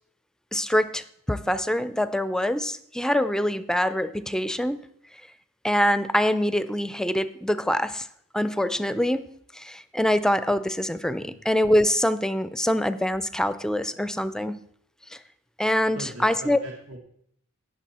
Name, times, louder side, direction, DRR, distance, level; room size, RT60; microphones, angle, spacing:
voice 1, 0.5-4.8 5.6-8.1 8.3-9.3 9.5-14.6 15.1-15.2 15.6-16.6, left 1 dB, 5° left, 14 dB, 0.5 m, -24 dB
voice 2, 15.9-17.0, right 1 dB, 75° right, 1 dB, 1.7 m, -40 dB
17.5 x 6.8 x 4.2 m, 0.69 s
head